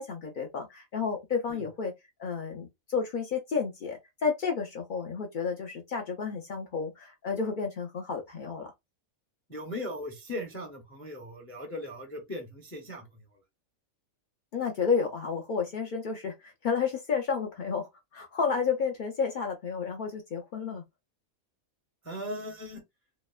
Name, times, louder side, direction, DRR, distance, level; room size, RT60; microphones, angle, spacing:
voice 1, 0.0-1.9 2.2-8.7 14.5-20.8, left 5 dB, 90° left, 0.4 m, -31 dB
voice 2, 9.5-13.2 22.0-22.8, left 1 dB, 20° left, 0.3 m, -38 dB
2.9 x 2.1 x 2.3 m
omnidirectional pair, 1.4 m